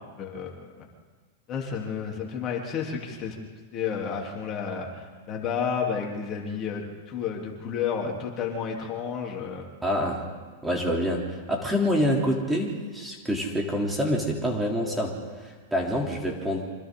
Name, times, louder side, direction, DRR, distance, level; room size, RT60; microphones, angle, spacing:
voice 1, 0.2-0.9 1.5-3.4 3.7-9.7, left 6 dB, 35° left, -1 dB, 3.4 m, -31 dB
voice 2, 9.8-10.2 10.6-16.7, equal, 5° right, -1 dB, 3.3 m, -27 dB
27.0 x 25.5 x 3.9 m, 1.5 s
hypercardioid pair, 120°, 0 cm